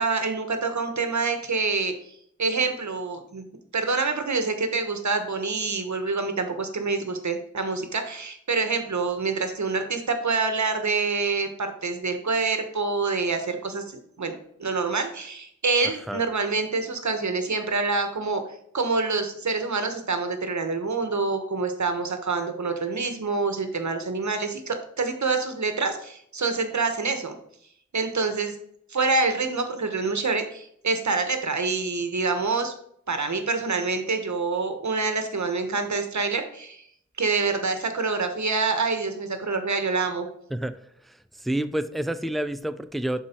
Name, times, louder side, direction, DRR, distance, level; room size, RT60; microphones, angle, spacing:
voice 1, 0.0-3.5 3.7-18.4 18.7-27.3 27.9-28.6 28.9-32.7 33.1-36.8 37.2-40.3, right 4 dB, 70° right, 7 dB, 1.3 m, -26 dB
voice 2, 41.1-43.2, right 1 dB, ahead, 11 dB, 0.5 m, -29 dB
11.5 x 4.5 x 4.5 m, 0.69 s
wide cardioid pair, 70°, 30 cm